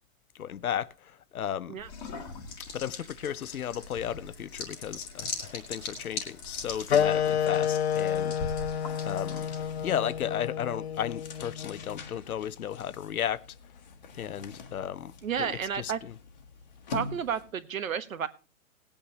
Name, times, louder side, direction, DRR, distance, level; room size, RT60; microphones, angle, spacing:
voice 1, 0.4-1.8 2.7-8.4 9.0-9.5 9.8-13.4 14.2-15.5 15.7-16.2, left 9 dB, 90° left, 0.9 m, -34 dB
sound 1, 1.8-9.9, left 4 dB, 10° left, 1.5 m, -41 dB
sound 2, 4.3-17.7, left 5 dB, 30° left, 1.3 m, -47 dB
sound 3, 6.9-12.0, left 8 dB, 50° left, 0.5 m, -29 dB
voice 2, 15.2-16.0 16.9-18.3, right 8 dB, 70° right, 1.6 m, -31 dB
19.0 x 8.7 x 3.0 m
hypercardioid pair, 175°, 42 cm